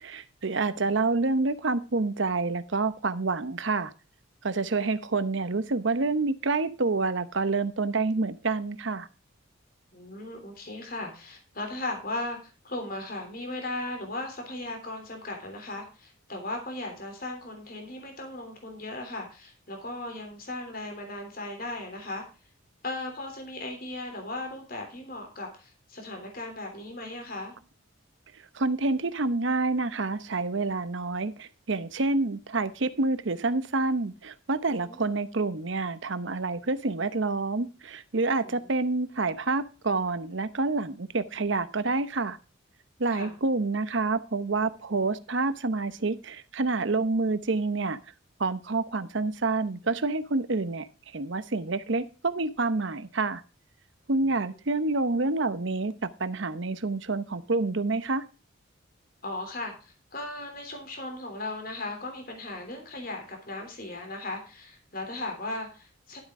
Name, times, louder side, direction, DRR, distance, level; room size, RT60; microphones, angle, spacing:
voice 1, 0.0-3.9 4.4-9.1 28.5-42.4 43.0-48.0 48.4-50.9 51.1-53.4 54.1-58.2, right 3 dB, 60° right, 0.8 m, -28 dB
voice 2, 9.9-22.2 22.8-27.5 34.7-35.0 38.4-38.7 43.1-43.4 54.2-54.5 59.2-66.2, left 2 dB, 45° left, 3.2 m, -37 dB
12.0 x 8.3 x 3.7 m
head